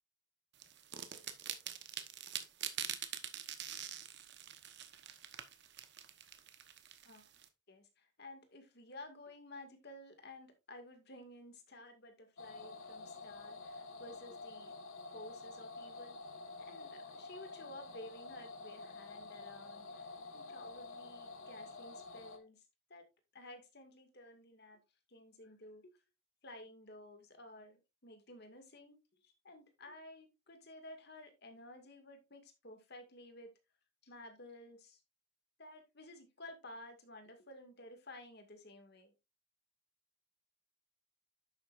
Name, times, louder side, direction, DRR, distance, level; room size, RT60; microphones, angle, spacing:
sound 1, 0.6-7.5, right 10 dB, 50° right, 1.1 m, -45 dB
voice 1, 7.7-14.7 15.1-16.2 16.6-22.6 22.9-23.1 23.3-24.8 25.1-25.9 26.4-29.0 29.2-33.5 34.0-35.0 35.6-39.1, left 1 dB, 50° left, 6 dB, 2.1 m, -54 dB
sound 2, 12.4-22.4, left 3 dB, 70° left, 1.5 m, -49 dB
10.5 x 7.8 x 2.5 m, 0.24 s
head